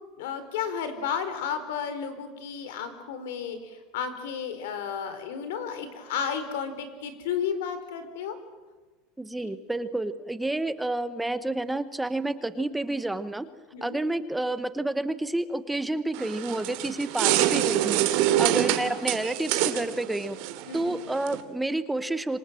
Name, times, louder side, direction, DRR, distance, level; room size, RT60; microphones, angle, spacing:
voice 1, 0.2-8.4 9.4-9.5 13.7-14.0 18.3-18.5 20.7-20.9, left 7 dB, 85° left, 10 dB, 4.5 m, -33 dB
voice 2, 9.2-13.5 13.8-18.1 18.4-20.4 20.7-22.4, right 2 dB, 5° right, 12 dB, 0.9 m, -29 dB
sound 1, 16.1-21.4, right 13 dB, 60° right, 2.5 m, -26 dB
27.0 x 25.0 x 7.6 m, 1.3 s
supercardioid pair, 150°, 0 cm